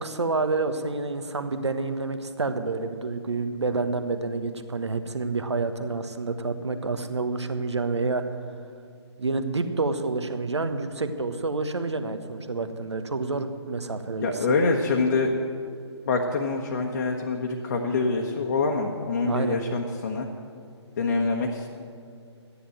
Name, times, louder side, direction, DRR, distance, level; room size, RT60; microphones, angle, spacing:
voice 1, 0.0-8.2 9.2-14.6 19.3-19.6, right 3 dB, 70° right, 8 dB, 1.3 m, -28 dB
voice 2, 14.2-15.3 16.1-20.3 21.0-21.7, left 3 dB, 40° left, 1 dB, 1.2 m, -25 dB
13.0 x 10.0 x 7.8 m, 2.5 s
figure-of-eight pair, 145°, 15 cm